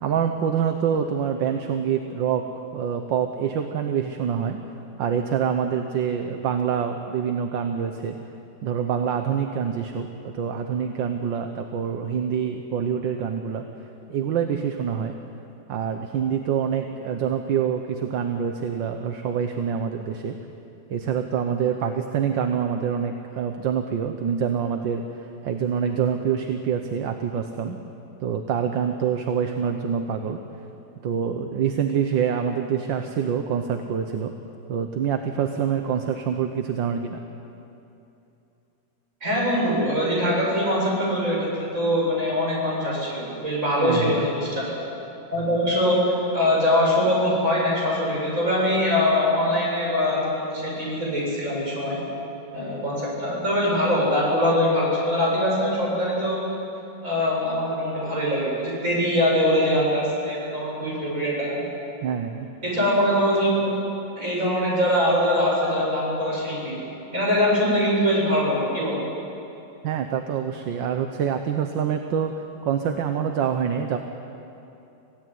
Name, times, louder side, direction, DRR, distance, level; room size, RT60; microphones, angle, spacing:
voice 1, 0.0-2.5 2.7-4.6 5.0-8.2 8.6-13.7 14.1-15.2 15.7-20.4 20.9-27.8 28.2-30.4 31.0-34.3 34.7-37.2 43.8-44.3 62.0-62.5 69.8-72.3 72.6-74.0, right 7 dB, 75° right, 6 dB, 1.7 m, -26 dB
voice 2, 39.2-44.7 45.3-52.0 52.5-56.4 57.0-61.6 62.6-63.7 64.2-66.8 67.1-69.0, left 1 dB, 40° right, -4 dB, 8.0 m, -23 dB
25.5 x 17.0 x 9.3 m, 2.8 s
omnidirectional pair, 2.1 m